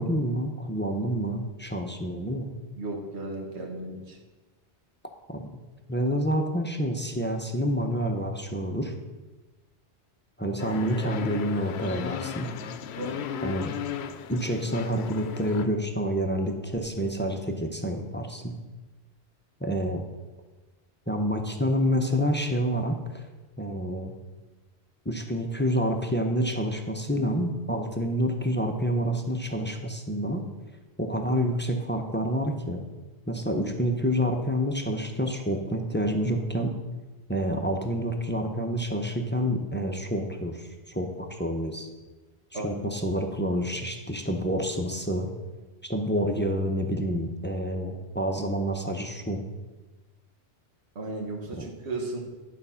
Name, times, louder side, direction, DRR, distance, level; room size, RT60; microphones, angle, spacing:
voice 1, 0.0-2.5 5.3-5.4 5.9-8.9 10.4-12.5 13.4-13.7 14.3-18.5 19.6-20.0 21.1-23.2 23.6-24.1 25.0-30.4 31.0-32.8 33.3-36.7 37.3-41.9 42.5-45.3 45.8-49.4 51.6-51.7, equal, 15° left, 3 dB, 0.5 m, -28 dB
voice 2, 2.8-4.2 13.0-13.2 42.5-42.8 50.9-52.2, right 2 dB, 70° right, 1 dB, 1.6 m, -35 dB
sound 1, 10.6-15.7, left 9 dB, 70° left, 0.8 m, -35 dB
10.5 x 4.2 x 5.6 m, 1.2 s
omnidirectional pair, 1.1 m